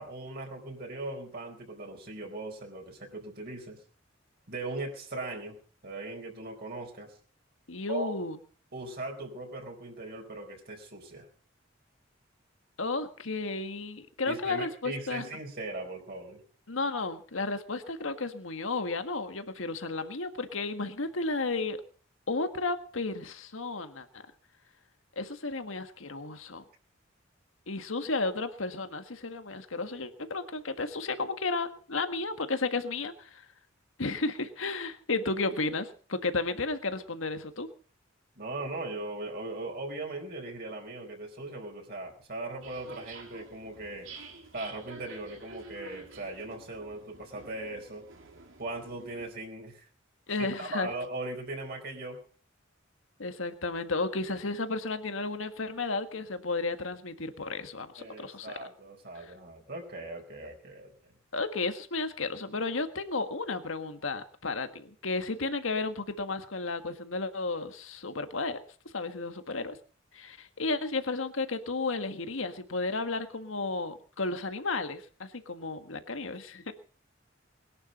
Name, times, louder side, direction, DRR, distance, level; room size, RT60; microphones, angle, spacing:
voice 1, 0.0-3.8 4.5-5.6 5.8-7.1 7.9-8.2 8.7-11.3 14.2-16.4 38.4-44.1 44.5-48.1 48.6-49.9 50.4-52.2 58.0-61.1, right 2 dB, 50° right, 1 dB, 4.3 m, -39 dB
voice 2, 7.7-8.4 12.8-15.3 16.7-21.8 22.3-24.1 25.2-26.6 27.7-33.5 34.0-37.7 50.3-50.9 53.2-58.6 59.2-59.3 61.3-68.6 68.9-69.8 70.1-76.7, left 3 dB, 90° left, 8 dB, 1.6 m, -33 dB
sound 1, 42.6-49.3, right 3 dB, 80° right, 3.6 m, -50 dB
21.0 x 11.5 x 5.4 m, 0.42 s
head